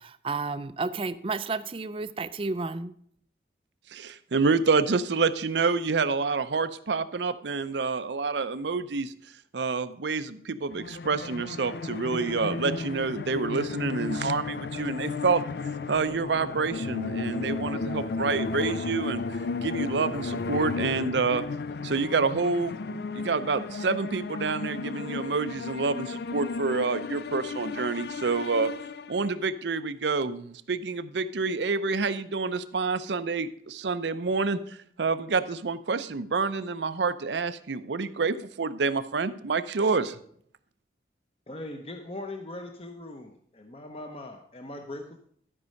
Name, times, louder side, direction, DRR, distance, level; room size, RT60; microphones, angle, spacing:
voice 1, 0.0-2.9, right 3 dB, 30° right, 14 dB, 0.4 m, -32 dB
voice 2, 3.9-9.1 9.5-15.4 15.9-21.4 21.8-28.7 29.1-40.2, right 4 dB, 80° right, 12 dB, 0.6 m, -28 dB
sound 1, 10.7-29.5, left 4 dB, 65° left, 0.4 m, -34 dB
voice 3, 41.5-45.2, left 1 dB, 30° left, 4 dB, 0.8 m, -40 dB
12.5 x 5.4 x 6.4 m, 0.63 s
head